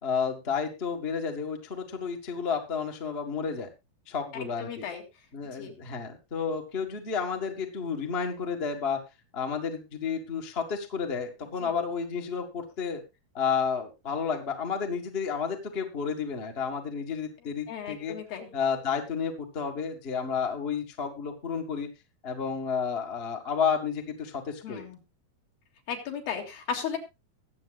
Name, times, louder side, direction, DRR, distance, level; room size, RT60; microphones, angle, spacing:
voice 1, 0.0-3.7 4.1-4.9 5.3-9.0 9.3-13.0 13.3-18.2 18.5-21.9 22.2-24.9, left 6 dB, 30° left, 3 dB, 1.1 m, -31 dB
voice 2, 4.6-5.0 5.5-5.8 11.6-11.7 17.7-18.5 24.6-25.0 25.9-27.0, left 7 dB, 75° left, 2 dB, 3.9 m, -35 dB
22.0 x 7.7 x 2.4 m, 0.25 s
omnidirectional pair, 4.2 m